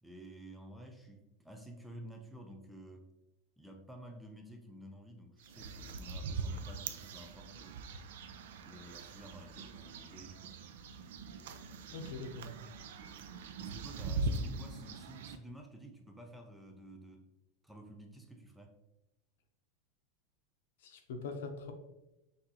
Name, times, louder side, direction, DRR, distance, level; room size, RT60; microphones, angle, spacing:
voice 1, 0.0-3.1 3.6-7.8 8.6-10.6 13.6-17.3 17.6-18.8, right 1 dB, ahead, 3 dB, 0.3 m, -52 dB
sound 1, 5.4-15.4, right 3 dB, 70° right, 0.4 m, -42 dB
voice 2, 11.9-12.6 20.8-21.7, left 4 dB, 70° left, 5 dB, 0.7 m, -42 dB
5.9 x 2.6 x 2.8 m, 0.97 s
supercardioid pair, 175°, 0 cm